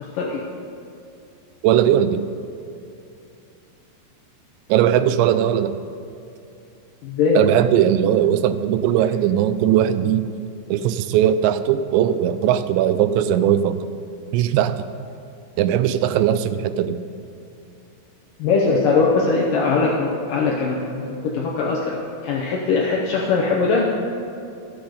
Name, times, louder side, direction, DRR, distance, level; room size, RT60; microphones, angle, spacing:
voice 1, 1.6-2.3 4.7-5.8 7.3-10.3 10.7-13.9 14.3-14.9 15.6-17.0, right 10 dB, 90° right, 12 dB, 2.8 m, -19 dB
voice 2, 7.0-7.4 18.4-23.9, left 4 dB, 80° left, -3 dB, 2.0 m, -21 dB
14.0 x 7.9 x 5.1 m, 2.7 s
omnidirectional pair, 5.1 m